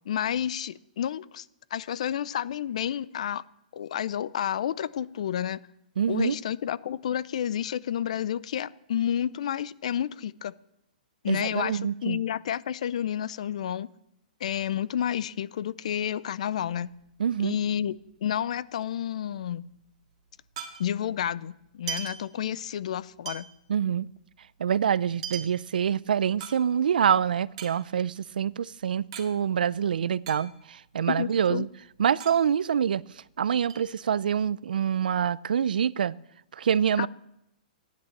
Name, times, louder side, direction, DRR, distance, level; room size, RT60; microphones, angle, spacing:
voice 1, 0.1-1.5 1.7-3.4 3.7-5.6 6.1-10.5 11.2-13.9 14.4-16.9 17.4-18.0 18.2-19.6 20.8-23.5 31.1-31.7 37.0-37.1, left 10 dB, 50° left, 0.5 m, -30 dB
voice 2, 6.0-6.4 11.3-12.2 17.2-17.6 23.7-24.1 24.6-31.7 32.0-33.0 33.4-36.2 36.5-37.1, right 8 dB, 85° right, 0.5 m, -26 dB
sound 1, 16.5-18.2 18.5-18.6 18.8-21.2 21.6-22.9 23.2-27.1 27.4-29.3 29.6-29.7 29.9-30.9 31.2-33.3 33.7-34.5, right 8 dB, 40° right, 1.8 m, -41 dB
14.5 x 10.5 x 7.2 m
hypercardioid pair, 175°, 5 cm